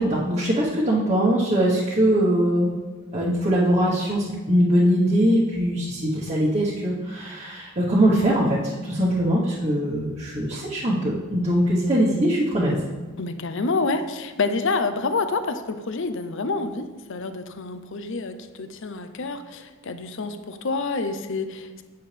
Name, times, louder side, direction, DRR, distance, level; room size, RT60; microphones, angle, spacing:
voice 1, 0.0-2.7 3.1-12.8, equal, 30° right, -8 dB, 1.2 m, -22 dB
voice 2, 13.2-21.8, left 3 dB, 60° left, 9 dB, 0.6 m, -28 dB
9.0 x 8.7 x 3.4 m, 1.3 s
head